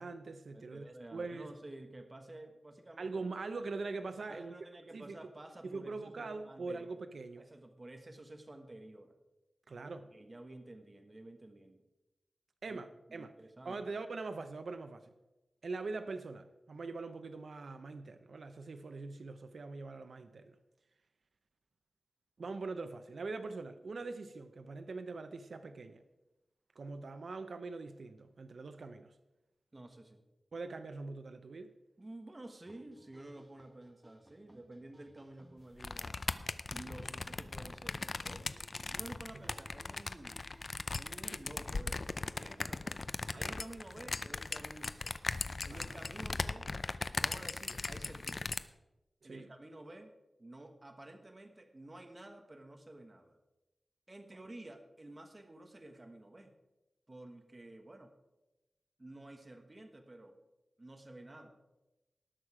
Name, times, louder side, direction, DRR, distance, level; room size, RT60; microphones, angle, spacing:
voice 1, 0.0-0.8 1.1-1.5 3.0-4.5 4.9-5.2 5.6-7.4 9.7-10.1 12.6-13.3 13.6-15.1 15.6-20.6 22.4-26.0 26.8-29.1 30.5-31.7 43.3-43.6 45.7-45.9 49.2-49.5, right 3 dB, 75° right, 8 dB, 0.7 m, -42 dB
voice 2, 0.5-3.1 4.3-6.9 7.4-9.1 9.8-11.8 12.7-12.8 13.1-13.8 29.7-30.2 32.0-36.3 36.7-38.6 38.9-40.4 40.9-45.2 45.6-46.7 47.2-48.7 49.2-50.1 50.4-53.4 54.1-56.5 57.1-58.1 59.0-60.4 60.8-61.5, right 1 dB, 30° right, 5 dB, 1.3 m, -51 dB
sound 1, 32.7-41.5, right 1 dB, 15° right, 1.1 m, -61 dB
sound 2, 35.8-48.6, left 3 dB, 50° left, 0.5 m, -38 dB
19.0 x 6.5 x 4.9 m, 1.0 s
wide cardioid pair, 90°, 0 cm